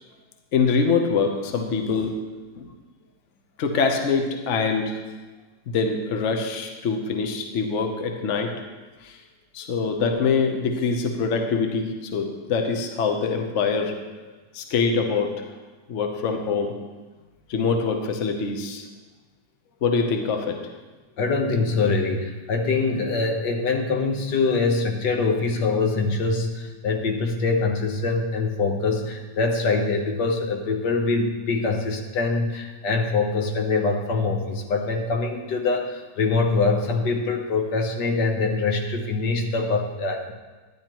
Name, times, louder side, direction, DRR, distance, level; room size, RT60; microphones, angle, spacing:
voice 1, 0.5-2.2 2.6-2.7 3.6-5.0 5.7-8.5 9.0-9.2 9.5-14.0 14.5-15.4 15.9-16.7 17.5-18.8 19.8-20.7, left 5 dB, 50° left, 4 dB, 1.0 m, -24 dB
voice 2, 21.2-40.3, left 3 dB, 75° left, 3 dB, 1.6 m, -24 dB
12.5 x 10.0 x 3.0 m, 1.3 s
omnidirectional pair, 1.9 m